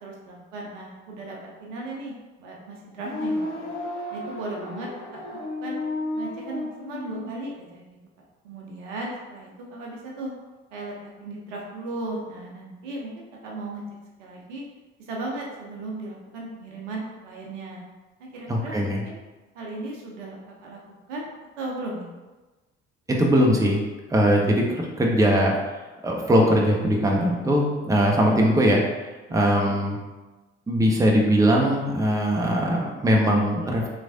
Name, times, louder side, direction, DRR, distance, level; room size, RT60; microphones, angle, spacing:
voice 1, 0.0-3.7 4.1-5.3 5.6-5.8 6.1-7.9 8.4-10.3 10.7-13.1 13.4-13.8 14.2-14.6 15.1-17.8 18.2-19.2 19.5-20.8 21.1-21.3 21.6-22.1 29.5-29.7, right 2 dB, 75° right, -2 dB, 0.8 m, -36 dB
sound 1, 2.9-7.3, left 1 dB, 75° left, 0.6 m, -32 dB
voice 2, 18.5-19.0 23.1-23.8 24.1-25.5 26.0-28.8 29.3-30.0 30.7-33.9, equal, 10° right, -1 dB, 0.7 m, -20 dB
3.8 x 3.2 x 2.6 m, 1.2 s
figure-of-eight pair, 50°, 37 cm